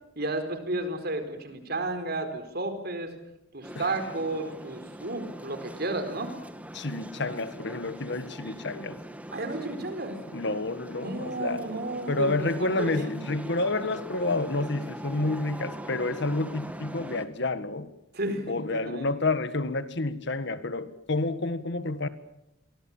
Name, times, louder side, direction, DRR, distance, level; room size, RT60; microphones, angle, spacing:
voice 1, 0.2-3.1 3.5-6.3 9.3-10.2 11.0-13.2 18.1-19.1, right 2 dB, 55° right, 4.3 m, -32 dB
sound 1, 3.6-17.3, equal, 5° right, 1.7 m, -42 dB
voice 2, 6.7-9.0 10.3-11.6 12.1-17.9 18.5-22.1, left 2 dB, 60° left, 1.7 m, -29 dB
30.0 x 23.5 x 7.3 m
head